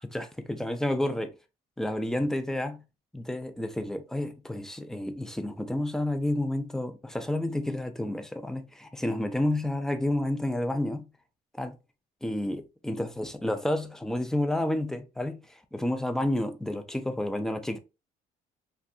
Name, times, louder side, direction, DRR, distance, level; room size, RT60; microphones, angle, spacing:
voice 1, 0.1-1.3 1.8-2.8 3.1-11.1 11.5-11.7 12.2-17.8, left 1 dB, 5° left, 0.3 m, -30 dB
2.6 x 2.2 x 2.2 m
cardioid pair, 110°, 17 cm